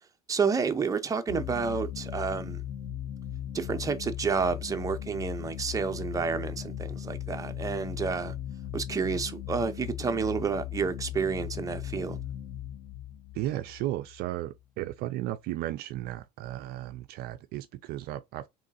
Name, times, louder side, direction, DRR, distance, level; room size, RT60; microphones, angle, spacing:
voice 1, 0.3-2.6 3.5-8.3 8.7-12.2, right 5 dB, 15° right, 0.7 m, -30 dB
sound 1, 1.3-14.6, left 11 dB, 90° left, 1.6 m, -38 dB
voice 2, 13.3-18.5, right 14 dB, 55° right, 0.4 m, -35 dB
3.6 x 3.1 x 4.1 m
supercardioid pair, 115°, 19 cm